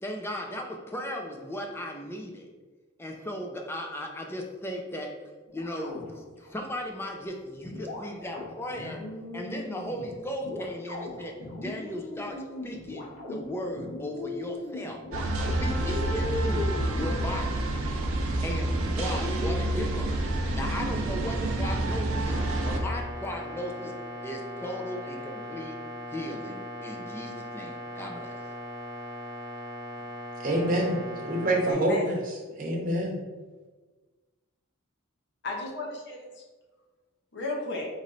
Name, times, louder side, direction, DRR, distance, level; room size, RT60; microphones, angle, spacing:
voice 1, 0.0-2.5 3.0-5.2 5.5-9.1 9.3-15.0 15.6-17.7 18.4-20.2 20.5-24.0 24.2-25.8 26.1-28.4, equal, 10° left, 2 dB, 0.4 m, -37 dB
sound 1, 5.5-6.6 7.6-17.8 19.0-19.6, left 3 dB, 75° left, 1.4 m, -38 dB
sound 2, 15.1-22.8, right 1 dB, 80° right, 0.6 m, -28 dB
sound 3, 22.3-31.7, left 1 dB, 15° right, 0.8 m, -39 dB
voice 2, 30.4-32.1 32.6-33.2, right 1 dB, 40° right, -1 dB, 1.0 m, -26 dB
voice 3, 31.7-32.2 35.4-36.4 37.3-37.9, left 2 dB, 55° left, 0 dB, 0.8 m, -34 dB
4.1 x 3.2 x 3.9 m, 1.3 s
head